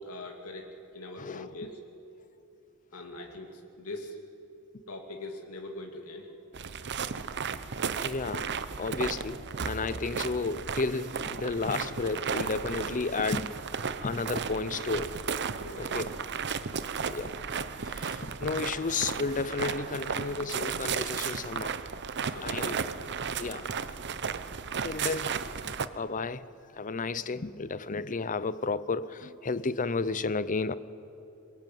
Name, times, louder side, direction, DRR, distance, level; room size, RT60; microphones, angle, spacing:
voice 1, 0.0-1.8 2.9-4.2 4.9-6.4 15.6-16.0 16.7-17.0 22.3-22.9 23.4-23.7 25.3-25.4, left 2 dB, 85° left, 2.6 m, -42 dB
voice 2, 1.2-1.5 8.0-8.5 8.8-13.5 14.0-15.2 15.8-16.1 17.1-17.3 17.8-21.7 22.4-22.8 23.4-23.7 24.8-25.4 25.6-26.5 26.8-30.7, left 4 dB, 35° left, 0.7 m, -32 dB
sound 1, 6.5-25.9, right 6 dB, 55° right, 0.9 m, -34 dB
21.5 x 21.5 x 9.3 m
head